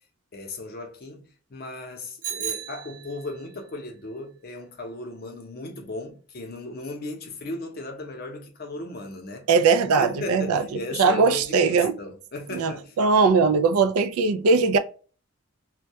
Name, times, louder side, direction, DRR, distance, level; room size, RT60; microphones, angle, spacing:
voice 1, 0.3-9.5 10.0-13.0 13.2-13.3, left 2 dB, 45° left, 0.6 m, -36 dB
Bicycle bell, 2.2-3.5, right 8 dB, 65° right, 0.9 m, -34 dB
voice 2, 9.5-10.6 11.0-12.0 12.5-12.7 13.0-14.8, right 4 dB, 90° right, 0.3 m, -20 dB
2.2 x 2.1 x 2.6 m
head